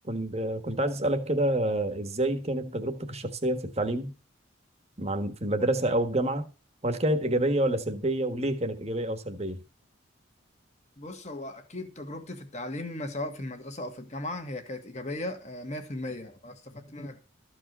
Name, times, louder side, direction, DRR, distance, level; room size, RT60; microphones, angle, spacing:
voice 1, 0.0-4.1 5.0-6.5 6.8-9.6, right 1 dB, 30° right, 1.4 m, -28 dB
voice 2, 11.0-17.2, left 1 dB, 35° left, 1.8 m, -37 dB
13.5 x 4.9 x 8.0 m
head